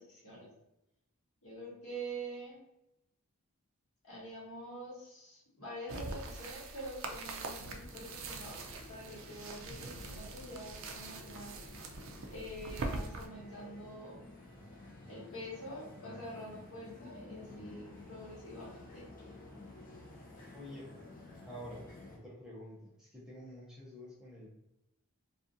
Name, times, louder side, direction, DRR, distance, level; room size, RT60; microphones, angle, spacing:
voice 1, 0.1-0.5 1.4-2.6 4.0-8.6 8.9-11.6 12.3-14.2 15.1-19.1, right 1 dB, 70° left, -5 dB, 1.1 m, -46 dB
sound 1, 5.9-13.3, right 3 dB, 60° right, 0.4 m, -43 dB
sound 2, 7.6-22.2, left 2 dB, 40° left, 0.5 m, -52 dB
voice 2, 20.5-20.9 21.4-24.5, equal, 5° right, -8 dB, 0.6 m, -49 dB
2.5 x 2.3 x 2.6 m, 0.86 s
head